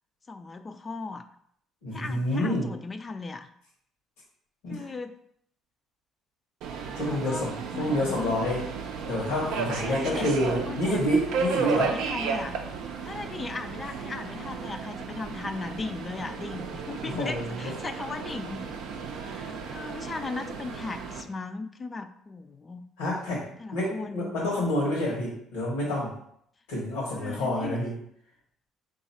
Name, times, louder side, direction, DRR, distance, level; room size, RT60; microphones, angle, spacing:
voice 1, 0.3-1.3 1.9-3.5 4.7-5.2 7.0-7.5 7.7-8.4 9.7-10.3 10.7-11.0 11.6-12.6 13.0-18.6 19.1-22.9 23.6-24.4 27.1-27.8, left 3 dB, 30° left, 8 dB, 0.3 m, -37 dB
voice 2, 1.8-2.7 4.6-4.9 7.0-8.7 9.1-11.9 17.0-17.7 23.0-26.1 26.7-27.9, left 1 dB, 85° left, -5 dB, 0.9 m, -28 dB
Subway metro underground, 6.6-21.2, right 5 dB, 75° right, 0.5 m, -34 dB
3.7 x 2.3 x 4.1 m, 0.69 s
supercardioid pair, 70°, 0 cm